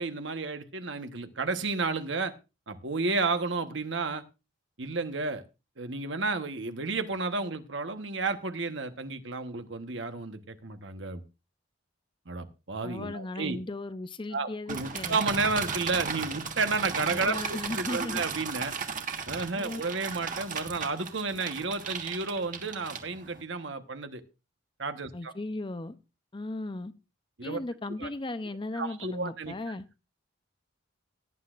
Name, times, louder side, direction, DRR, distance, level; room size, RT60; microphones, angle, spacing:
voice 1, 0.0-2.3 2.7-4.2 4.8-5.4 5.8-11.2 12.3-13.6 14.3-18.7 19.3-24.2 24.8-25.3 27.4-27.6 28.0-28.1 28.7-29.7, right 3 dB, 65° right, 1.2 m, -32 dB
voice 2, 12.8-15.2 17.1-18.2 19.6-19.8 25.1-26.0 26.3-26.9 27.4-29.8, left 2 dB, 25° left, 0.6 m, -36 dB
sound 1, 14.7-23.4, right 5 dB, 40° right, 1.5 m, -36 dB
18.0 x 10.0 x 2.5 m
head